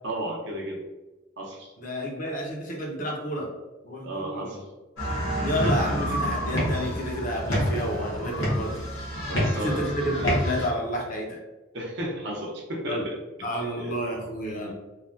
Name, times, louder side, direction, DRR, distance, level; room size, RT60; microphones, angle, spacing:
voice 1, 0.0-0.8 1.4-1.7 4.0-4.6 9.3-10.3 11.7-13.2 13.5-14.0, right 1 dB, 55° right, -1 dB, 0.6 m, -33 dB
voice 2, 1.8-3.5 3.8-4.6 5.4-8.8 9.6-11.4 12.9-13.0 13.4-14.7, equal, 40° left, 0 dB, 0.6 m, -30 dB
sound 1, 5.0-10.7, equal, 70° left, 1.1 m, -28 dB
3.1 x 2.2 x 2.4 m, 1.1 s
head